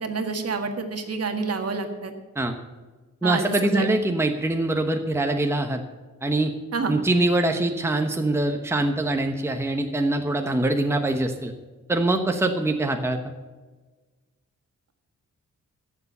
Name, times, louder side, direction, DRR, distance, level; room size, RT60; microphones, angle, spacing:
voice 1, 0.0-2.1 3.2-3.9 6.7-7.0, right 4 dB, 50° right, 5 dB, 1.8 m, -28 dB
voice 2, 3.2-5.8 6.2-6.5 6.8-11.5 11.9-13.2, right 2 dB, 10° right, 4 dB, 1.1 m, -23 dB
14.5 x 7.3 x 6.7 m, 1.3 s
cardioid pair, 110°, 31 cm